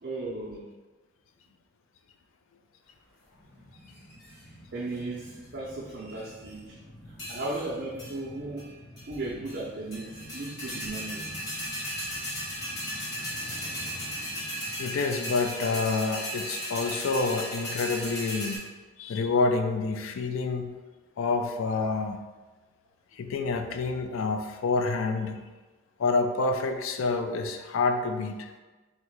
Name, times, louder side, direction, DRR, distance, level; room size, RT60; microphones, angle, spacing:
voice 1, 0.0-0.7 4.7-6.7 7.3-8.7 9.1-11.4, right 2 dB, 45° right, -7 dB, 0.6 m, -36 dB
sound 1, 3.3-16.5 16.8-16.9, equal, 5° left, 0.6 m, -49 dB
sound 2, 3.9-4.4 5.0-5.5 5.9-6.6 7.2-7.7 8.0-8.2 8.6-8.7 9.0-9.6 9.9-18.6, equal, 50° left, 1.5 m, -36 dB
voice 2, 14.8-18.6 19.0-20.7 21.2-22.2 23.1-25.4 26.0-28.5, left 3 dB, 70° left, 6 dB, 0.4 m, -28 dB
3.1 x 2.8 x 4.5 m, 1.2 s
head